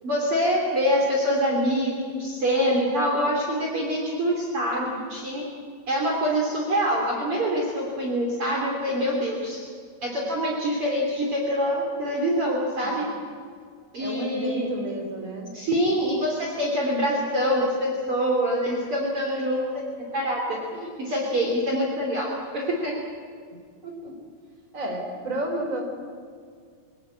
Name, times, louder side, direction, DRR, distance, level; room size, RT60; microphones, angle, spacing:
voice 1, 0.0-5.4 5.9-9.6 10.0-13.1 13.9-14.7 15.5-19.8 20.1-23.0, equal, 40° right, -1 dB, 3.6 m, -25 dB
voice 2, 14.0-15.5 23.8-24.2 24.7-25.8, right 1 dB, 20° right, 2 dB, 3.8 m, -31 dB
25.0 x 17.0 x 8.6 m, 2.1 s
omnidirectional pair, 4.2 m